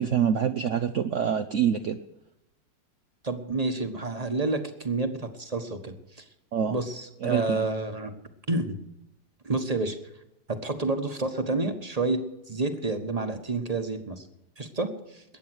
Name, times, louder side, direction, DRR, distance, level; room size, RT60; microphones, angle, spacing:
voice 1, 0.0-2.0 6.5-6.8 7.2-7.6, right 8 dB, 60° right, 8 dB, 0.8 m, -26 dB
voice 2, 3.2-6.2 6.7-8.1 8.5-8.8 9.4-10.0 10.5-14.3 14.6-15.2, right 3 dB, 25° right, 7 dB, 1.2 m, -29 dB
21.5 x 8.8 x 6.3 m, 0.91 s
omnidirectional pair, 2.0 m